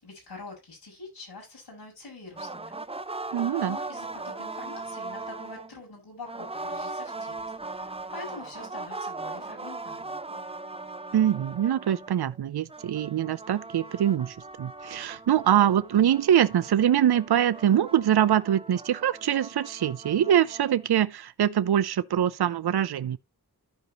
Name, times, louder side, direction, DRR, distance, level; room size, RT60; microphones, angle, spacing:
voice 1, 0.0-2.7 3.6-7.4 7.7-10.2, left 3 dB, 80° left, 6.4 m, -45 dB
sound 1, 2.4-5.8 6.2-12.4 12.7-20.8, right 3 dB, 15° right, 0.5 m, -39 dB
voice 2, 3.3-3.8 11.1-23.2, right 10 dB, 75° right, 0.6 m, -24 dB
14.5 x 5.0 x 2.9 m
wide cardioid pair, 60°, 39 cm